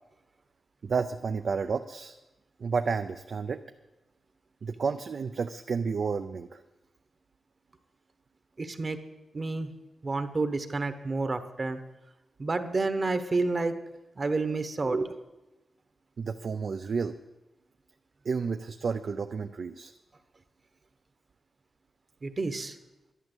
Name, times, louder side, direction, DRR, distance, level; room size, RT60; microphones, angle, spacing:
voice 1, 0.8-2.2 2.6-3.6 4.6-6.6 16.2-17.2 18.2-19.9, right 5 dB, 60° right, 7 dB, 0.6 m, -31 dB
voice 2, 8.6-9.0 9.3-9.7 10.0-11.8 12.4-13.7 14.2-15.1 22.2-22.8, right 3 dB, 35° right, 9 dB, 1.1 m, -29 dB
11.5 x 11.0 x 8.0 m, 1.0 s
wide cardioid pair, 105°, 0 cm